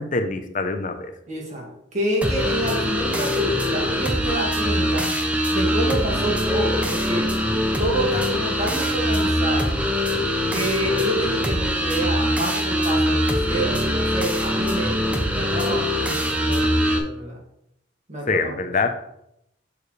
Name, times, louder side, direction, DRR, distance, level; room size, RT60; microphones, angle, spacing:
voice 1, 0.0-1.1 18.3-18.9, left 3 dB, 45° left, 7 dB, 0.8 m, -24 dB
voice 2, 1.3-5.1 5.5-7.3 7.8-9.8 10.5-17.4 18.1-18.7, right 1 dB, 40° right, -2 dB, 2.1 m, -28 dB
sound 1, 2.2-17.0, equal, 10° right, 0.9 m, -23 dB
6.9 x 6.8 x 3.3 m, 0.77 s
head